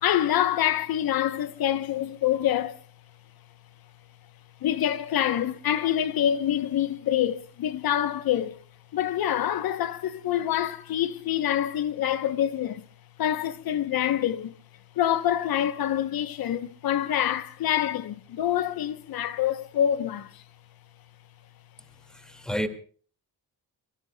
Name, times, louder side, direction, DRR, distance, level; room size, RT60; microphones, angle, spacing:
voice 1, 0.0-2.8 4.6-8.6 8.9-12.8 13.2-14.5 15.0-20.4, left 11 dB, 75° left, 0.9 m, -26 dB
voice 2, 22.1-22.7, equal, ahead, 2.1 m, -30 dB
24.0 x 23.0 x 2.2 m
cardioid pair, 100°, 37 cm